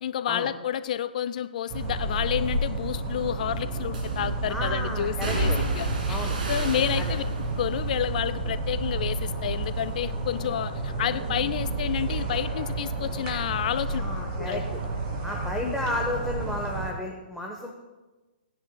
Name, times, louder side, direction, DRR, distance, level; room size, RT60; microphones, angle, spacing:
voice 1, 0.0-7.2 7.6-14.0 14.4-14.6 15.6-15.8, left 10 dB, 50° left, 12 dB, 0.5 m, -30 dB
sound 1, 1.7-16.9, right 3 dB, 35° right, 3.0 m, -31 dB
sound 2, 2.5-2.7 3.9-4.4 5.2-9.4 9.8-10.4 10.8-14.0 14.3-15.4 15.7-15.9, right 1 dB, 60° right, 2.1 m, -34 dB
voice 2, 4.5-5.6 6.1-6.4 7.0-7.1 13.9-14.6 15.2-17.7, left 1 dB, ahead, -2 dB, 1.1 m, -32 dB
18.5 x 10.0 x 2.3 m, 1.2 s
figure-of-eight pair, 125°, 5 cm